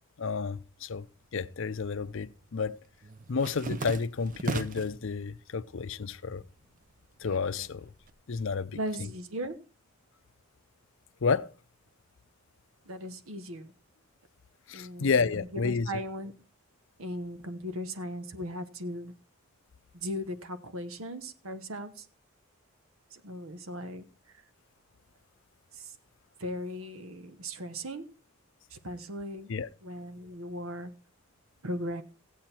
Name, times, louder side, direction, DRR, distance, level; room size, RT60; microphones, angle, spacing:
voice 1, 0.2-1.1 1.3-2.8 3.3-6.4 7.2-7.9 8.3-8.8 11.2-11.5 14.7-15.9 29.5-29.7, left 5 dB, 60° left, 0.5 m, -30 dB
sound 1, 1.1-1.9 2.2-5.0 5.5-6.1 6.4-8.1, right 3 dB, 40° right, 0.6 m, -38 dB
voice 2, 8.7-9.6 12.9-13.7 14.7-16.3 17.0-19.1 19.9-22.1 23.1-24.0 25.7-25.9 26.4-28.1 28.7-29.5 29.8-30.9 31.6-32.0, equal, 70° right, 1.2 m, -38 dB
15.0 x 8.5 x 4.4 m
head